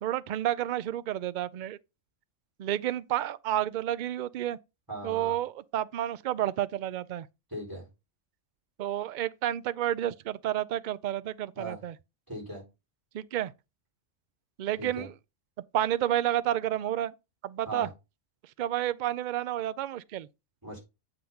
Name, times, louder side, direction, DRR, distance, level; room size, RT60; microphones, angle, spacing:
voice 1, 0.0-1.8 2.6-4.6 5.0-7.3 8.8-12.0 13.1-13.5 14.6-15.1 15.7-17.1 17.4-17.9 18.6-20.3, right 12 dB, 70° right, 0.4 m, -30 dB
voice 2, 4.9-5.4 7.5-7.9 11.6-11.8 12.3-12.6 14.8-15.1 17.7-17.9 20.6-20.8, right 1 dB, 15° right, 4.1 m, -38 dB
7.8 x 3.7 x 5.7 m
omnidirectional pair, 1.3 m